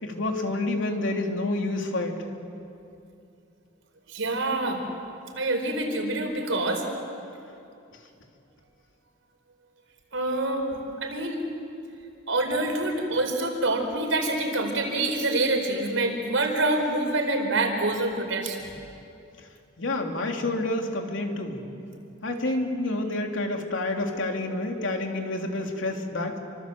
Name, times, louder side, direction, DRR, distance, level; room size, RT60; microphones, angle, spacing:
voice 1, 0.0-2.1 19.8-21.6 22.2-26.4, left 2 dB, 75° left, 2 dB, 3.2 m, -28 dB
voice 2, 4.1-4.8 5.4-7.0 10.1-11.4 12.3-18.7, right 2 dB, 80° right, 3 dB, 5.0 m, -26 dB
29.0 x 25.5 x 7.8 m, 2.6 s
head